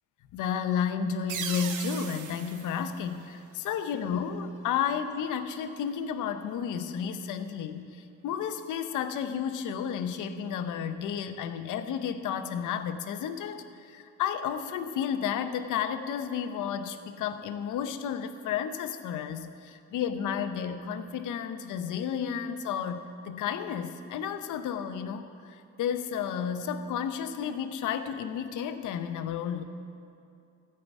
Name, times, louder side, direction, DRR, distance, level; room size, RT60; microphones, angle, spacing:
voice 1, 0.3-29.6, left 8 dB, 85° left, 9 dB, 0.8 m, -32 dB
sound 1, 1.3-3.9, right 7 dB, 80° right, 1.0 m, -39 dB
14.0 x 5.7 x 8.1 m, 2.6 s
cardioid pair, 90°, 30 cm